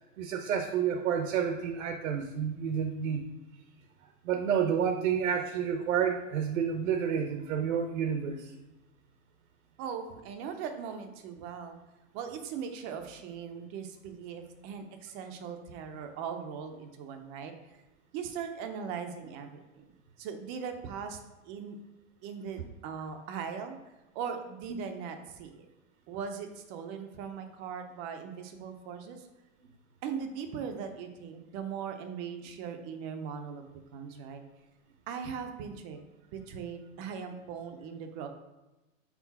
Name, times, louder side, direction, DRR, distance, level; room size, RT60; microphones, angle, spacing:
voice 1, 0.2-3.2 4.2-8.5, right 7 dB, 80° right, 5 dB, 0.8 m, -29 dB
voice 2, 9.8-11.8 12.1-17.8 18.1-19.9 20.2-21.2 21.4-21.8 22.2-23.8 24.1-25.7 26.1-29.3 30.0-33.7 33.9-34.4 35.1-36.0 36.3-38.3, right 7 dB, 25° right, 6 dB, 0.5 m, -39 dB
4.6 x 3.7 x 5.6 m, 1.0 s
supercardioid pair, 145°, 40 cm